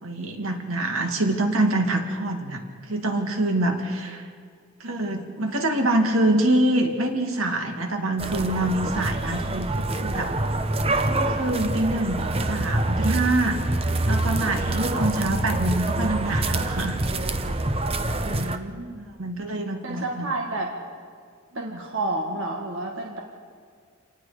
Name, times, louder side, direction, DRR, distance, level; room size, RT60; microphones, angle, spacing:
voice 1, 0.0-4.3 4.8-10.3 11.0-13.6 14.1-17.0 18.3-18.6 19.2-20.3 21.5-21.8, right 1 dB, 80° right, 3 dB, 2.3 m, -25 dB
sound 1, 8.2-18.6, right 2 dB, 30° right, 0.9 m, -26 dB
voice 2, 18.2-19.1 19.8-20.7 21.6-23.2, right 2 dB, 65° right, 0 dB, 1.8 m, -30 dB
28.0 x 19.0 x 5.1 m, 2.1 s
head